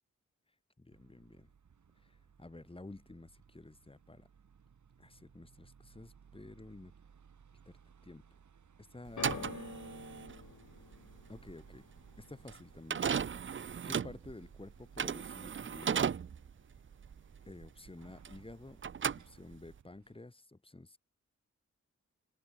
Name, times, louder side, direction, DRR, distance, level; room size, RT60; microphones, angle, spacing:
voice 1, 0.8-1.5 2.0-4.3 5.0-6.9 7.7-8.2 8.8-9.6 10.1-10.2 11.3-11.9 12.2-13.1 13.8-16.1 17.5-18.8 19.2-21.0, left 2 dB, 20° left, 2.2 m, -51 dB
sound 1, 0.9-20.2, right 6 dB, 80° right, 4.6 m, -64 dB
sound 2, 9.1-18.5 18.8-19.8, right 7 dB, 40° right, 0.6 m, -36 dB
sound 3, 9.2-15.4 15.7-16.4 17.1-17.2, left 7 dB, 75° left, 3.7 m, -51 dB
wide cardioid pair, 80°, 29 cm